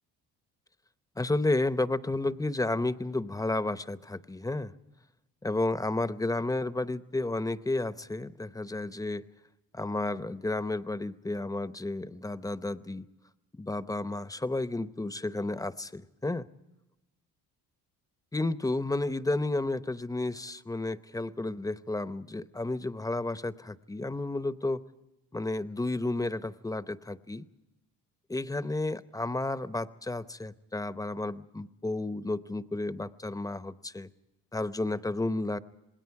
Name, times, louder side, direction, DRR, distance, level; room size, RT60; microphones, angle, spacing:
voice 1, 1.2-4.7 5.4-9.2 9.7-13.0 13.6-16.5 18.3-24.8 25.3-27.4 28.3-34.1 34.5-35.6, left 2 dB, 10° left, 14 dB, 0.8 m, -32 dB
27.5 x 20.5 x 4.8 m, 0.99 s
supercardioid pair, 80°, 38 cm